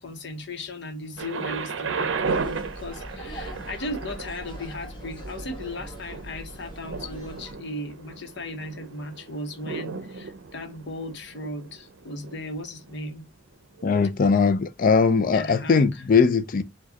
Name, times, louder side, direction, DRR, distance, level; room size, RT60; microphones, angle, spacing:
voice 1, 0.0-13.3 15.3-16.0, left 1 dB, 65° left, 0.9 m, -36 dB
Thunder, 1.2-13.0 13.8-13.9, right 5 dB, 85° right, 0.6 m, -35 dB
sound 1, 2.2-7.5, equal, 25° left, 1.3 m, -41 dB
voice 2, 13.8-16.6, left 5 dB, 45° left, 0.4 m, -20 dB
4.8 x 2.3 x 4.0 m
head